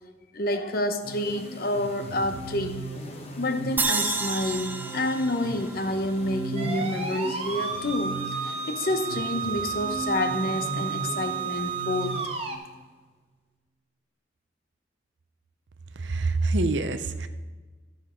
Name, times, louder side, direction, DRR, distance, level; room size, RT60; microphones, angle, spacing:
voice 1, 0.3-2.8 3.4-12.2, left 1 dB, 55° left, 7 dB, 0.9 m, -29 dB
sound 1, 1.0-12.8, right 1 dB, 35° left, 1.1 m, -38 dB
sound 2, 3.8-7.0, right 3 dB, 10° right, 0.3 m, -31 dB
sound 3, 6.6-12.6, right 6 dB, 30° right, 1.0 m, -32 dB
voice 2, 16.0-17.3, right 3 dB, 80° right, 10 dB, 0.6 m, -26 dB
14.0 x 5.4 x 5.1 m, 1.3 s
head